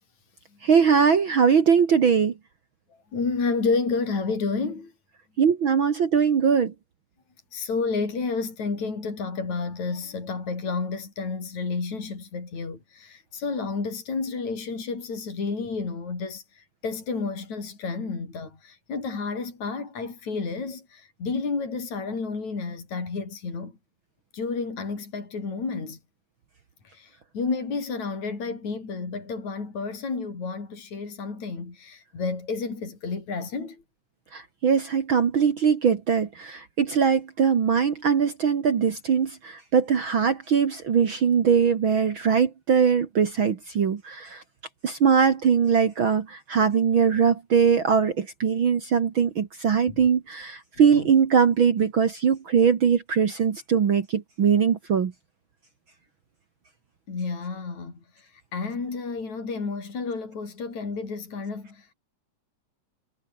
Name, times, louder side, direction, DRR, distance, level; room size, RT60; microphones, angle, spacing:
voice 1, 0.6-2.3 5.4-6.7 34.3-44.4 44.8-55.1, right 6 dB, 45° right, 2.0 m, -21 dB
voice 2, 3.1-4.9 7.5-23.7 24.3-26.0 26.8-33.8 49.9-50.0 50.9-51.1 57.1-61.9, left 4 dB, 65° left, 6.8 m, -31 dB
omnidirectional pair, 3.6 m